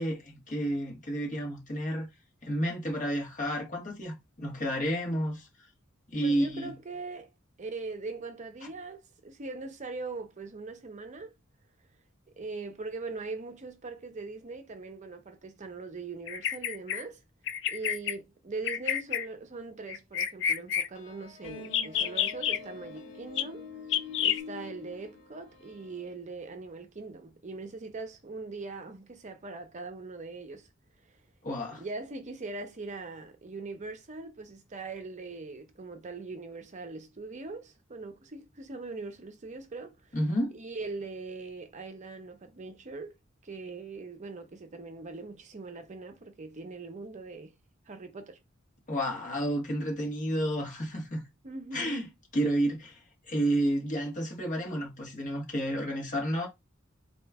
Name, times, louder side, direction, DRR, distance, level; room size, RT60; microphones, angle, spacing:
voice 1, 0.0-2.1 2.4-5.5 6.1-6.7 31.4-31.8 40.1-40.5 48.9-51.2 51.7-52.1 52.3-53.0 53.3-56.5, right 1 dB, 40° left, 1.6 m, -30 dB
voice 2, 6.2-7.3 7.6-11.3 12.4-17.2 17.7-23.7 24.2-30.7 31.1-31.2 31.8-40.2 40.5-43.2 43.4-47.5 47.9-48.4 51.4-52.1, right 3 dB, 35° right, 0.6 m, -41 dB
Bird vocalization bird call bird song, 16.3-17.0 17.5-18.1 18.7-19.3 19.9-20.9 21.6-22.6 23.4-23.5 23.9-24.4, left 9 dB, 65° left, 0.5 m, -29 dB
sound 1, 20.9-26.1, left 5 dB, 90° left, 1.4 m, -45 dB
4.4 x 2.8 x 3.4 m
head